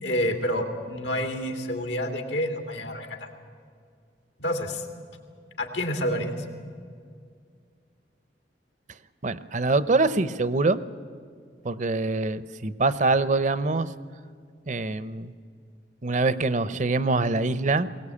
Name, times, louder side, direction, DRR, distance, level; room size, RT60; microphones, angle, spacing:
voice 1, 0.0-3.3 4.4-4.9 5.6-6.3, equal, 85° left, 4 dB, 2.8 m, -28 dB
voice 2, 9.2-10.8 11.6-13.9 14.7-15.3 16.0-17.9, right 3 dB, 45° right, 15 dB, 0.7 m, -24 dB
22.0 x 18.0 x 8.5 m, 2.1 s
head